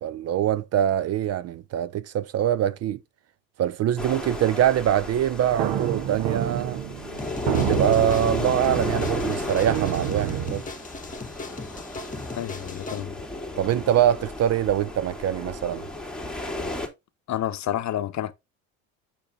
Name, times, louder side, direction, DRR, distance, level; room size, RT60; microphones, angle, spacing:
voice 1, 0.0-3.0 3.6-6.8 7.5-10.6 13.6-15.9, right 10 dB, 40° right, 0.4 m, -24 dB
sound 1, 4.0-16.9, left 1 dB, ahead, 2.4 m, -33 dB
sound 2, 5.5-10.6, right 10 dB, 70° right, 1.4 m, -29 dB
sound 3, 7.2-13.0, left 3 dB, 20° left, 1.6 m, -39 dB
voice 2, 12.4-13.1 17.3-18.3, left 12 dB, 45° left, 0.9 m, -29 dB
6.6 x 6.1 x 3.6 m
supercardioid pair, 85°, 40 cm